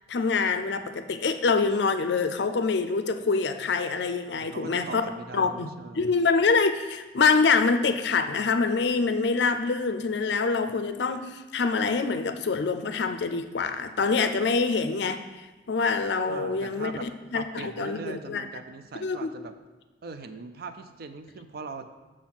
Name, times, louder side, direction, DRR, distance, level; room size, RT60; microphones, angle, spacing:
voice 1, 0.1-5.0 5.3-5.7 6.0-18.5 19.0-19.3, left 4 dB, 65° left, 9 dB, 0.5 m, -25 dB
voice 2, 4.5-6.0 16.3-17.1 17.3-19.5 20.0-21.9, right 4 dB, 55° right, 9 dB, 0.4 m, -40 dB
6.1 x 4.2 x 5.9 m, 1.2 s
head